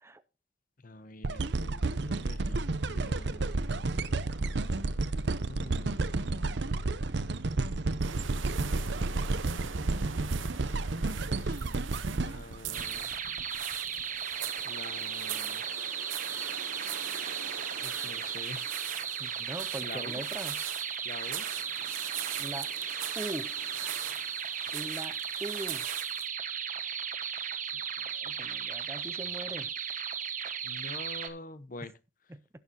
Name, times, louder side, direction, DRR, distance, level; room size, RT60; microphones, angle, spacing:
voice 1, 0.8-3.5 5.5-6.2 11.4-11.8 12.2-13.1 14.0-14.1 14.6-15.6 17.8-18.7 19.8-20.2 21.0-21.5 30.6-31.9, left 2 dB, 45° left, 0.9 m, -46 dB
sound 1, 1.2-13.4 14.0-14.1, right 3 dB, 60° right, 0.7 m, -31 dB
sound 2, 8.0-26.3, right 9 dB, 90° right, 0.9 m, -42 dB
sound 3, 12.7-31.3, right 7 dB, 40° right, 1.4 m, -36 dB
voice 2, 19.2-20.6 22.4-22.7 23.1-23.5 24.7-25.9 28.0-29.7 32.3-32.4, right 1 dB, 15° right, 0.5 m, -41 dB
17.0 x 6.9 x 2.8 m
head